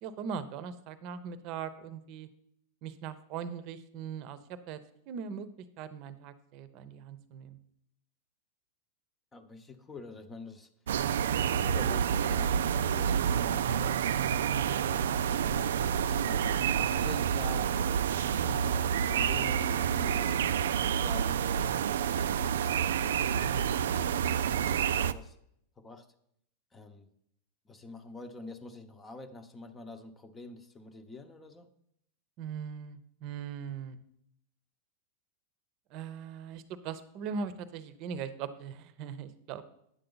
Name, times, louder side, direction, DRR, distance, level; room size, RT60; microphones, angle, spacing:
voice 1, 0.0-2.3 2.8-4.8 5.1-5.5 5.8-7.6 32.4-34.0 35.9-39.6, right 6 dB, 50° right, 13 dB, 0.7 m, -40 dB
voice 2, 9.3-10.7 11.4-12.5 12.9-15.7 16.2-17.7 18.4-20.4 20.8-25.4 25.8-26.1 26.7-27.1 27.7-31.7, left 3 dB, 20° left, 8 dB, 0.8 m, -47 dB
sound 1, 10.9-25.1, right 8 dB, 80° right, 0.3 m, -28 dB
9.4 x 6.8 x 3.9 m, 0.73 s
hypercardioid pair, 115°, 0 cm